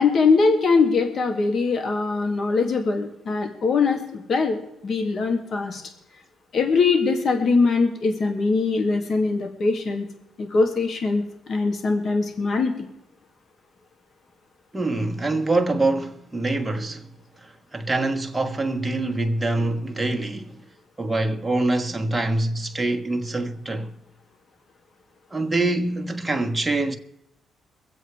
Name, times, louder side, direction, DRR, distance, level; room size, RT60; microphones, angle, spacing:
voice 1, 0.0-5.8 6.5-10.1 10.4-12.9, left 4 dB, 55° left, 2.3 m, -22 dB
voice 2, 14.7-17.1 17.4-20.7 21.0-23.9 25.3-27.0, right 2 dB, 15° right, 1.3 m, -25 dB
23.0 x 7.9 x 4.7 m
cardioid pair, 90°, 0 cm